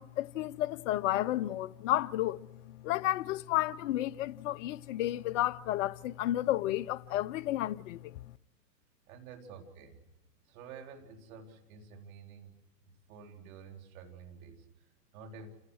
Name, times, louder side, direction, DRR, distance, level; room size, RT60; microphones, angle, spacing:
voice 1, 0.0-8.1, left 14 dB, 50° left, 0.7 m, -32 dB
voice 2, 9.1-10.0 10.4-12.5 12.8-15.5, right 5 dB, 55° right, 4.0 m, -50 dB
28.5 x 17.0 x 6.3 m
hypercardioid pair, 130°, 49 cm